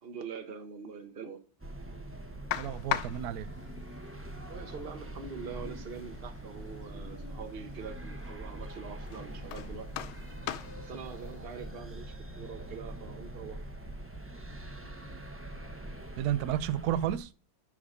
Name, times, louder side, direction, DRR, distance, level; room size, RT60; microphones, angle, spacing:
voice 1, 0.0-1.4 4.5-10.0 10.8-13.6, right 6 dB, 35° right, 1.3 m, -44 dB
sound 1, 1.6-17.2, right 1 dB, 20° right, 0.4 m, -43 dB
sound 2, 2.5-12.0, left 12 dB, 90° left, 1.5 m, -42 dB
voice 2, 2.6-3.5 16.2-17.3, right 11 dB, 70° right, 1.0 m, -31 dB
10.5 x 5.0 x 5.1 m
omnidirectional pair, 2.2 m